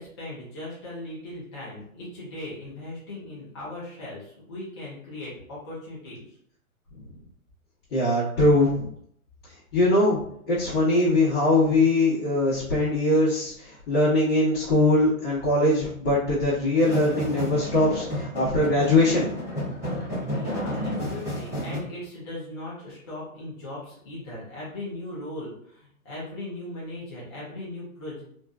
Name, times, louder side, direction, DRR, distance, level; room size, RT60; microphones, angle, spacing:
voice 1, 0.0-6.4 18.2-18.3 20.3-28.2, left 1 dB, 20° left, -8 dB, 0.4 m, -38 dB
voice 2, 7.9-8.9 9.7-10.2 10.5-19.3, left 1 dB, 45° left, -9 dB, 1.1 m, -21 dB
sound 1, 16.8-21.8, left 1 dB, 5° right, 0.9 m, -31 dB
2.4 x 2.4 x 2.3 m, 0.67 s
hypercardioid pair, 135°, 43 cm